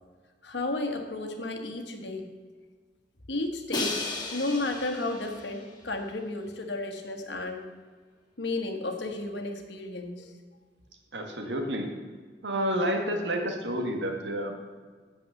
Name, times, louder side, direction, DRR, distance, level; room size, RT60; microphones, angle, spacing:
voice 1, 0.4-2.3 3.3-7.7 8.4-10.3, left 2 dB, 75° left, 4 dB, 1.4 m, -33 dB
Crash cymbal, 3.7-5.7, left 2 dB, 25° left, 2.1 m, -34 dB
voice 2, 11.1-11.9 12.4-14.5, equal, 75° right, 3 dB, 1.7 m, -29 dB
8.8 x 7.1 x 6.6 m, 1.5 s
head